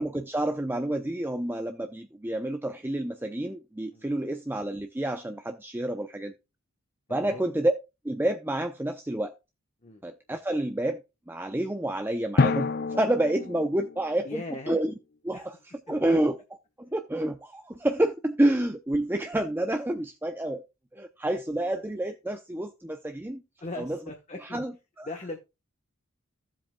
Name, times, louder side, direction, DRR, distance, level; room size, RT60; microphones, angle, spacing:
voice 1, 0.0-6.3 7.1-7.7 8.0-9.3 10.0-11.0 11.3-14.9 15.2-15.5 15.9-16.4 16.8-20.6 20.9-23.4 23.8-24.0 24.4-24.7 25.0-25.1, right 1 dB, 10° right, 0.6 m, -29 dB
voice 2, 3.9-4.2 7.1-7.5 9.8-10.0 14.2-14.8 15.3-15.4 15.9-16.2 23.6-24.6 25.0-25.4, left 2 dB, 30° left, 1.1 m, -39 dB
Drum, 12.4-14.7, left 4 dB, 50° left, 0.5 m, -28 dB
14.5 x 7.6 x 2.3 m
head